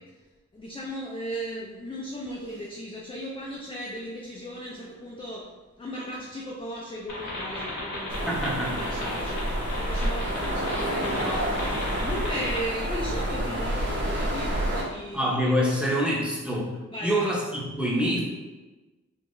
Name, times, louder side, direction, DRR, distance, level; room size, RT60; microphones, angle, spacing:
voice 1, 0.5-5.5 5.8-8.4 8.8-16.2 16.9-17.3, equal, 20° left, -4 dB, 0.4 m, -36 dB
sound 1, 7.1-12.6, left 1 dB, 85° left, 1.3 m, -35 dB
sound 2, 8.1-14.8, right 1 dB, 40° right, 0.9 m, -29 dB
voice 2, 8.3-8.8 15.1-18.2, equal, 5° right, -5 dB, 0.8 m, -26 dB
3.6 x 2.8 x 2.5 m, 1.2 s
wide cardioid pair, 115°, 30 cm